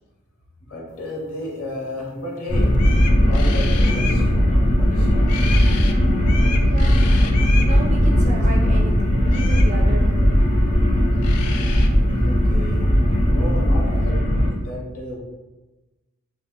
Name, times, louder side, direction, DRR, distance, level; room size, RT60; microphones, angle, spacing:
voice 1, 0.7-2.7 3.2-5.5 12.1-15.2, left 1 dB, 65° left, -3 dB, 0.8 m, -33 dB
sound 1, 2.4-2.5 2.7-4.2 5.2-5.9 6.2-7.7 9.3-9.7 10.9-11.0 11.2-11.9, left 6 dB, 85° left, 0.3 m, -32 dB
sound 2, 2.5-14.5, equal, 30° left, 0.5 m, -17 dB
voice 2, 6.6-7.3 7.6-10.3, right 2 dB, 30° right, -1 dB, 0.4 m, -33 dB
2.4 x 2.1 x 3.6 m, 1.1 s
head